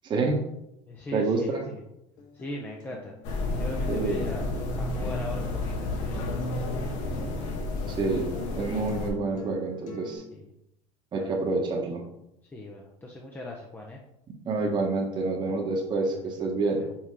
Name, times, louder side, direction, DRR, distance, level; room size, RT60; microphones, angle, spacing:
voice 1, 0.0-0.4 1.1-1.6 3.9-4.2 7.9-10.2 11.1-12.0 14.5-16.8, right 3 dB, 30° right, -1 dB, 1.3 m, -28 dB
voice 2, 0.9-1.8 2.3-3.1 3.4-4.5 4.8-6.3 9.1-9.2 10.3-10.5 11.1-11.3 12.5-14.0 15.5-15.6 16.2-16.3 16.8-16.9, left 2 dB, 10° left, -1 dB, 0.7 m, -40 dB
Acoustic guitar, 2.2-10.2, left 3 dB, 60° left, 1.9 m, -48 dB
sound 1, 3.2-9.1, left 2 dB, 75° left, 1.4 m, -31 dB
5.7 x 3.6 x 4.8 m, 0.82 s
supercardioid pair, 125°, 16 cm